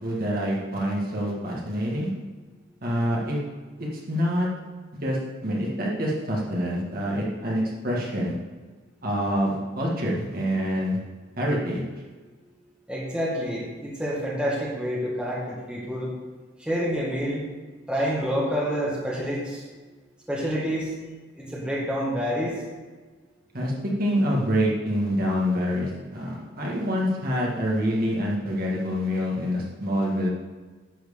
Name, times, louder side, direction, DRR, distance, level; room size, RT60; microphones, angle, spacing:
voice 1, 0.0-2.1 2.8-3.4 3.8-4.5 5.0-8.4 9.0-11.0 11.4-11.8 23.5-23.7 24.0-30.3, equal, 45° right, -4 dB, 1.8 m, -26 dB
voice 2, 12.9-16.1 16.6-17.4 17.9-19.6 20.3-20.9 21.4-22.5, equal, 5° right, -5 dB, 1.7 m, -28 dB
10.5 x 4.5 x 7.0 m, 1.4 s
head